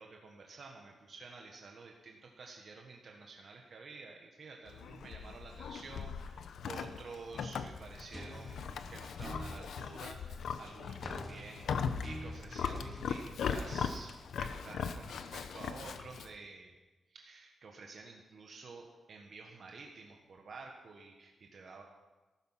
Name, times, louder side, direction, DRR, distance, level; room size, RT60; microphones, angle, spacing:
voice 1, 0.0-16.7 17.1-21.8, right 4 dB, 55° right, 1 dB, 1.5 m, -51 dB
Livestock farm animals working animals, 4.7-16.3, left 6 dB, 80° left, 0.8 m, -39 dB
sound 1, 8.1-9.7 11.0-13.8, equal, 10° left, 2.8 m, -46 dB
14.0 x 13.0 x 5.8 m, 1.2 s
wide cardioid pair, 115°, 0 cm